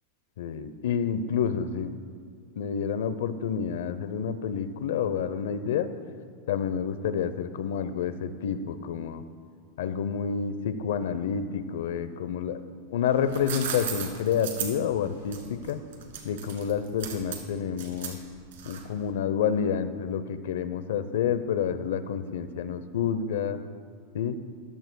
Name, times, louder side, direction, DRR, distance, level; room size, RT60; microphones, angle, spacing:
voice 1, 0.4-1.9 2.6-5.9 6.5-9.2 9.8-12.6 12.9-15.8 16.2-18.2 18.7-23.6 24.1-24.4, left 7 dB, 80° left, 12 dB, 0.7 m, -29 dB
sound 1, 13.1-19.0, right 8 dB, 80° right, 1.8 m, -36 dB
14.0 x 14.0 x 2.3 m, 2.1 s
supercardioid pair, 165°, 0 cm